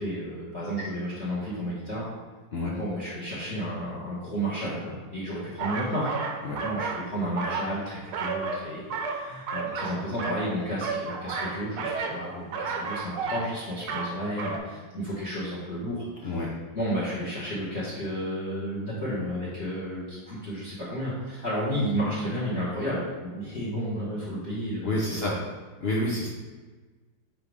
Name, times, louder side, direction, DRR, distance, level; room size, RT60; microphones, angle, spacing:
voice 1, 0.0-2.1 2.8-6.1 6.6-16.4 16.7-25.2, equal, 35° left, -8 dB, 1.8 m, -32 dB
sound 1, 5.6-7.0 7.3-8.6 8.9-10.4 10.7-12.2 12.5-13.5 13.8-14.1 14.4-14.6, right 5 dB, 85° right, 1.7 m, -32 dB
voice 2, 24.8-25.3 25.8-26.3, left 1 dB, 80° left, -4 dB, 0.5 m, -28 dB
9.7 x 3.5 x 3.5 m, 1.3 s
omnidirectional pair, 2.3 m